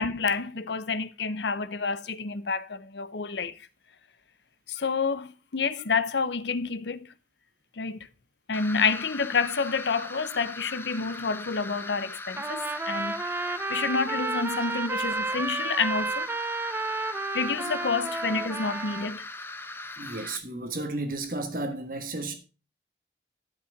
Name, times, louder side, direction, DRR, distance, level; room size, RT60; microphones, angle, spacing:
voice 1, 0.0-3.6 4.7-7.1 7.8-8.0 8.5-16.3 17.3-19.3, left 5 dB, 75° left, 0.7 m, -29 dB
sound 1, 8.5-20.4, left 2 dB, 15° left, 0.8 m, -40 dB
Trumpet, 12.4-19.1, right 3 dB, 10° right, 0.4 m, -31 dB
voice 2, 20.0-22.3, right 2 dB, 50° right, 1.4 m, -33 dB
13.0 x 5.6 x 5.0 m
head